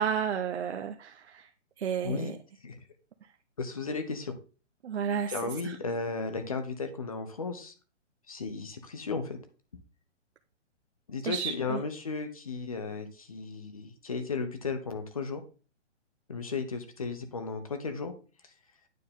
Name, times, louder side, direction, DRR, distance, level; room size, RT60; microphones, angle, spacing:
voice 1, 0.0-1.5 1.8-2.3 4.8-5.3 5.6-5.7 11.2-11.8, right 7 dB, 60° right, 5 dB, 0.6 m, -32 dB
voice 2, 2.0-2.3 2.6-2.9 3.6-4.4 5.3-7.7 8.3-9.4 11.1-15.4 16.3-18.1 18.4-18.5, left 4 dB, 30° left, 9 dB, 0.6 m, -35 dB
9.2 x 4.4 x 3.6 m, 0.35 s
hypercardioid pair, 180°, 36 cm